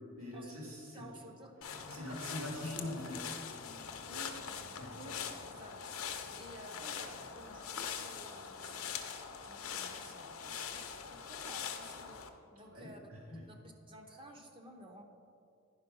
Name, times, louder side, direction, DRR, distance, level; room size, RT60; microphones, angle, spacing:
voice 1, 0.2-0.8 1.9-3.3 4.8-4.9 12.6-13.4, left 1 dB, 70° right, -5 dB, 2.4 m, -43 dB
voice 2, 0.9-1.5 1.8-2.5 4.0-4.4 4.9-5.1 5.4-5.8 6.4-12.2 12.5-13.0 13.5-15.0, right 1 dB, 25° right, 2 dB, 0.8 m, -54 dB
sound 1, 1.6-12.3, left 7 dB, 75° left, 0.7 m, -43 dB
10.5 x 5.3 x 5.4 m, 2.4 s
head